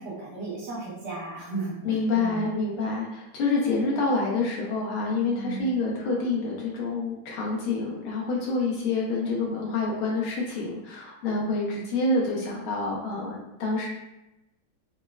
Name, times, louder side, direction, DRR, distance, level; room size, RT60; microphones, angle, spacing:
voice 1, 0.0-2.5 5.3-5.7, right 3 dB, 65° right, -6 dB, 0.7 m, -35 dB
voice 2, 1.8-13.9, left 3 dB, 85° left, -3 dB, 1.6 m, -27 dB
4.2 x 2.0 x 2.3 m, 0.93 s
omnidirectional pair, 2.3 m